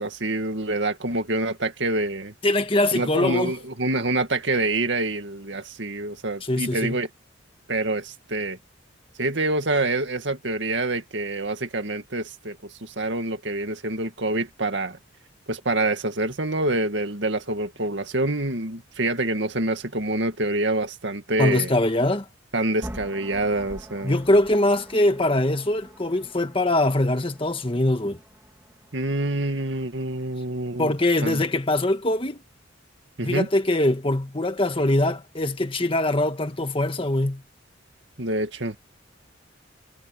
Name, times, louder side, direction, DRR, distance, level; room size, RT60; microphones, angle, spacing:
voice 1, 0.0-2.3 2.9-7.1 7.7-8.6 9.2-15.0 15.5-21.7 22.5-24.1 28.9-30.9 31.2-31.4 33.2-33.5 38.2-38.8, right 2 dB, 70° right, 2.2 m, -26 dB
voice 2, 2.4-3.5 6.4-7.0 21.4-22.3 24.0-28.2 30.8-32.4 33.2-37.4, left 1 dB, 30° left, 1.7 m, -22 dB
sound 1, 22.8-30.8, equal, 15° right, 2.6 m, -45 dB
head